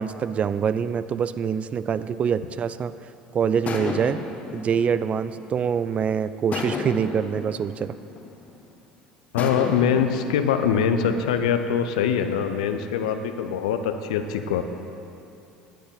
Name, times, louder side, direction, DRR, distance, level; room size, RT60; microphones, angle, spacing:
voice 1, 0.0-2.9 3.3-4.2 4.5-7.9, right 7 dB, 35° right, 14 dB, 0.4 m, -25 dB
sound 1, 3.7-5.9 6.5-8.7 9.4-11.6, left 5 dB, 35° left, 1.3 m, -34 dB
voice 2, 9.3-14.6, left 7 dB, 65° left, 8 dB, 0.8 m, -23 dB
18.0 x 10.5 x 3.8 m, 2.9 s
figure-of-eight pair, 65°, 4 cm